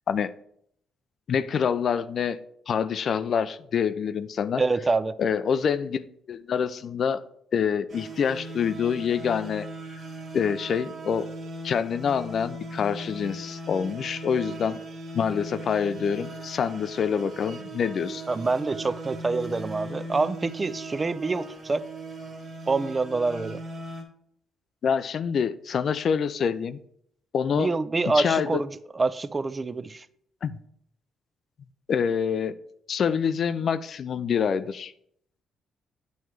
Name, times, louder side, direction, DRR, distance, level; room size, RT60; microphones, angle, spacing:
voice 1, 1.3-2.4 2.7-4.6 5.2-6.0 6.3-7.2 7.5-9.7 10.3-11.3 11.6-14.8 15.1-18.2 24.8-26.8 27.3-27.7 28.1-28.6 30.4-30.6 31.9-32.5 32.9-34.9, left 7 dB, 55° left, 0.3 m, -26 dB
voice 2, 4.6-5.1 18.3-21.8 22.7-23.6 27.5-28.7 28.9-30.1, right 3 dB, 25° right, 0.3 m, -26 dB
sound 1, 7.9-24.0, right 2 dB, 45° right, 1.4 m, -39 dB
9.2 x 3.1 x 4.5 m
cardioid pair, 90°, 0 cm